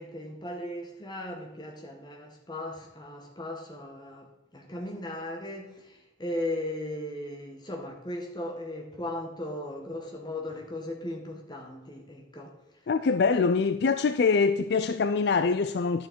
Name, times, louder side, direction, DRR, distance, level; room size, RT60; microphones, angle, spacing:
voice 1, 0.0-12.6, left 1 dB, 20° left, 1.6 m, -37 dB
voice 2, 12.9-16.1, left 4 dB, 55° left, 0.4 m, -24 dB
11.5 x 6.5 x 4.5 m
head